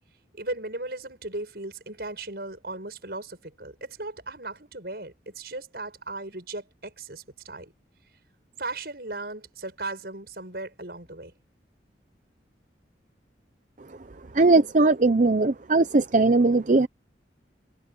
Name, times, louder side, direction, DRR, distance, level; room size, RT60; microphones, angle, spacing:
voice 1, 0.3-7.7 8.6-11.3, right 2 dB, 60° right, 7.3 m, -37 dB
voice 2, 14.4-16.9, right 3 dB, 45° right, 0.7 m, -19 dB
head